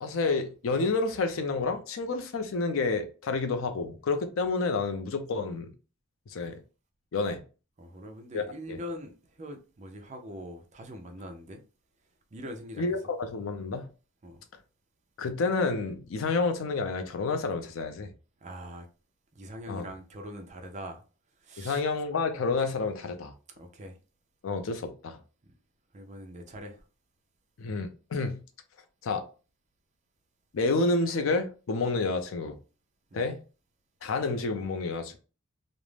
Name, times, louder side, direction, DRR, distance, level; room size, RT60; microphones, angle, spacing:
voice 1, 0.0-5.7 6.3-6.6 7.1-7.4 8.3-8.8 12.8-13.9 15.2-18.1 19.7-19.9 21.6-23.3 24.4-25.2 27.6-28.4 29.0-29.2 30.5-32.6 33.1-33.4 34.0-35.2, left 3 dB, 90° left, 0.5 m, -29 dB
voice 2, 7.8-11.6 12.3-12.9 14.2-14.4 18.4-18.9 19.3-21.0 21.4-21.8 23.6-24.0 25.9-26.8 33.1-33.3, equal, 35° right, 0.5 m, -42 dB
2.4 x 2.0 x 3.1 m
head